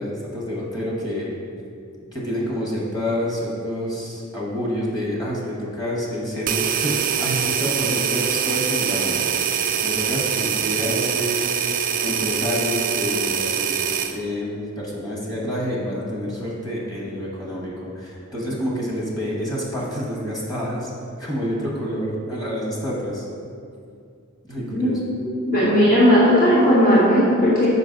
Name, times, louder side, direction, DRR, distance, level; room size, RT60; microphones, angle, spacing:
voice 1, 0.0-1.3 2.1-9.3 9.8-11.5 12.0-13.8 14.1-20.9 21.2-23.3 24.4-25.0, equal, 20° left, -5 dB, 1.2 m, -28 dB
sound 1, 6.5-14.2, right 8 dB, 40° right, 0.3 m, -24 dB
voice 2, 25.2-27.7, equal, 45° left, -7 dB, 1.1 m, -16 dB
5.8 x 5.0 x 3.8 m, 2.4 s
head